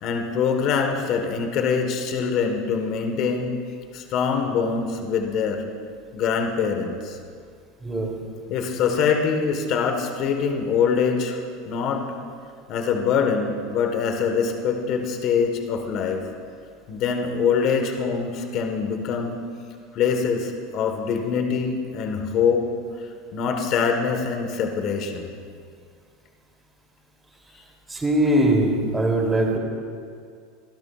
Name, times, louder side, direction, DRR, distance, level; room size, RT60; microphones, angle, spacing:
voice 1, 0.0-3.5 3.9-5.6 6.1-7.2 8.5-11.4 11.7-12.0 12.7-16.2 16.9-19.4 19.9-22.6 23.3-25.3, left 6 dB, 50° left, 3 dB, 1.6 m, -24 dB
voice 2, 7.8-8.1 27.9-29.6, right 1 dB, 15° right, -1 dB, 3.4 m, -21 dB
24.0 x 12.5 x 2.6 m, 2.2 s
hypercardioid pair, 100°, 0 cm